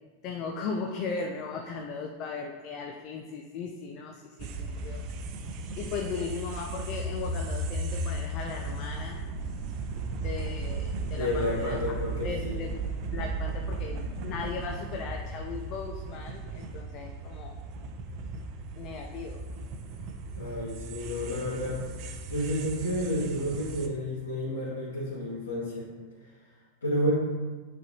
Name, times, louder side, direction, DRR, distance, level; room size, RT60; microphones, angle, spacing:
voice 1, 0.2-5.0 5.8-9.2 10.2-11.8 12.2-12.7 13.1-17.6 18.7-19.4, left 5 dB, 40° left, 3 dB, 0.5 m, -37 dB
sound 1, 4.4-23.9, right 2 dB, 40° right, 0.6 m, -36 dB
voice 2, 11.0-12.6 20.3-21.8 22.3-25.9 26.8-27.1, equal, 65° left, -11 dB, 2.1 m, -31 dB
9.3 x 4.3 x 2.9 m, 1.4 s
figure-of-eight pair, 90°, 0 cm